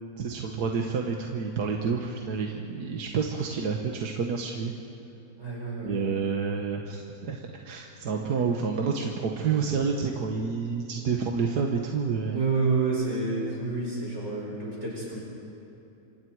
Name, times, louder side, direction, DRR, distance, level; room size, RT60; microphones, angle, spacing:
voice 1, 0.2-4.7 5.8-12.4, right 5 dB, 70° right, 1 dB, 1.8 m, -29 dB
voice 2, 5.4-6.1 8.1-8.2 12.2-15.2, right 4 dB, 40° right, -5 dB, 7.3 m, -29 dB
27.0 x 26.0 x 4.8 m, 3.0 s
omnidirectional pair, 1.8 m